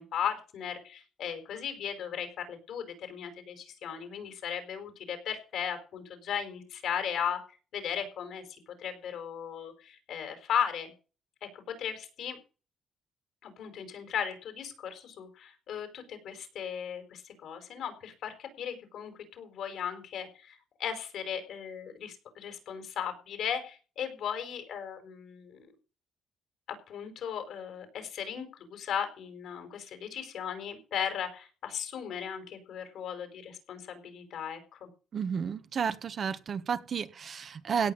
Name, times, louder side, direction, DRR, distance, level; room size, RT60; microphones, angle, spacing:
voice 1, 0.0-7.4 7.7-10.9 11.4-12.4 13.4-25.7 26.9-34.9, left 8 dB, 75° left, 4.9 m, -37 dB
voice 2, 35.1-37.9, right 7 dB, 55° right, 1.5 m, -32 dB
17.0 x 5.8 x 8.6 m
cardioid pair, 90°, 0 cm